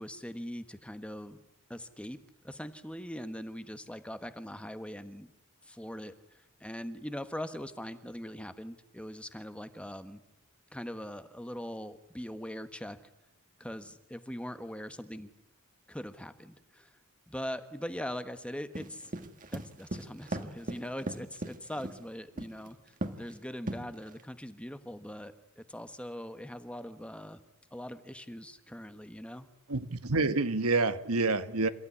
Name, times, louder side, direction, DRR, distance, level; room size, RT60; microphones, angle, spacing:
voice 1, 0.0-1.4 1.7-2.2 2.4-5.3 5.6-10.2 10.7-13.0 13.6-15.3 15.9-17.0 17.3-19.1 19.5-27.4 27.7-29.5, equal, 5° left, 10 dB, 1.3 m, -41 dB
sound 1, 18.7-22.0 22.4-22.7 23.0-23.3 23.7-24.2, right 1 dB, 40° right, 1.9 m, -37 dB
voice 2, 29.7-31.7, right 3 dB, 85° right, 10 dB, 1.5 m, -28 dB
28.5 x 15.5 x 9.8 m, 0.91 s
head